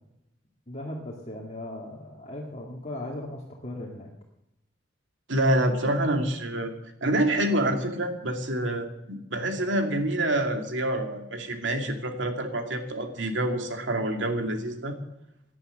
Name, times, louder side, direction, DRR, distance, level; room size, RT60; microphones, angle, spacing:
voice 1, 0.7-4.1, left 1 dB, 35° left, -1 dB, 2.1 m, -37 dB
voice 2, 5.3-6.7 7.0-15.0, right 1 dB, 90° right, 5 dB, 2.5 m, -27 dB
18.0 x 11.0 x 6.5 m, 0.85 s
head